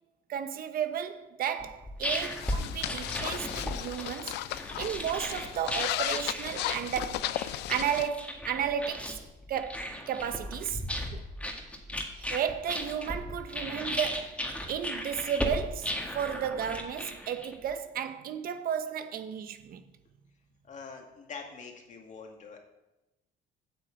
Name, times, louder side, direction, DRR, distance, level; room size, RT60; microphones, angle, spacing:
voice 1, 0.3-9.2 9.5-10.8 11.1-11.2 12.2-19.8, right 8 dB, 60° right, 0.9 m, -33 dB
sound 1, 1.6-17.7, left 1 dB, 5° left, 1.8 m, -36 dB
sound 2, 2.1-8.1, left 14 dB, 85° left, 0.5 m, -35 dB
voice 2, 20.6-22.6, left 5 dB, 45° left, 2.1 m, -45 dB
8.4 x 6.2 x 8.3 m
cardioid pair, 110°, 17 cm